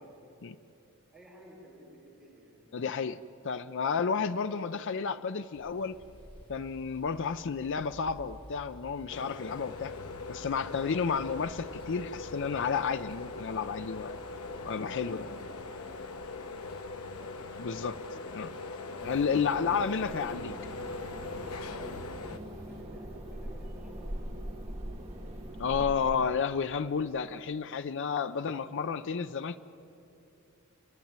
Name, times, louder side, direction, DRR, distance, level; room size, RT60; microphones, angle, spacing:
voice 1, 1.1-2.8 4.2-4.6 14.0-16.0 16.6-17.4 18.1-18.6 21.7-22.1 22.4-24.8, right 1 dB, ahead, -6 dB, 5.2 m, -54 dB
voice 2, 2.7-6.0 6.5-9.9 10.3-14.1 14.6-15.3 17.6-18.0 18.3-18.5 19.0-20.5 25.6-29.6, left 6 dB, 55° left, 12 dB, 0.5 m, -31 dB
sound 1, 5.5-22.8, equal, 25° left, 2.3 m, -54 dB
sound 2, 9.1-22.4, left 3 dB, 80° left, 0.9 m, -41 dB
sound 3, 19.0-26.1, right 1 dB, 30° right, 2.1 m, -42 dB
28.5 x 10.5 x 8.8 m, 2.8 s
head